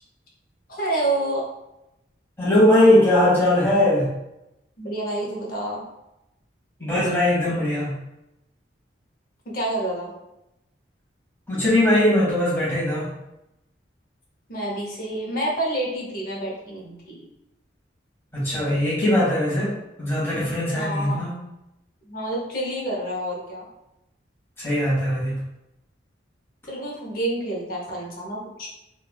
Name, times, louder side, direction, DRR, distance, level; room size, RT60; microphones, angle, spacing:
voice 1, 0.7-1.5 4.8-5.8 9.5-10.1 14.5-17.3 20.7-21.2 22.0-23.7 26.7-28.7, right 1 dB, 50° left, -2 dB, 0.7 m, -28 dB
voice 2, 2.4-4.1 6.8-7.9 11.5-13.1 18.3-19.7 20.0-21.3 24.6-25.4, left 1 dB, 10° left, -7 dB, 1.0 m, -20 dB
3.1 x 2.2 x 2.2 m, 0.89 s
head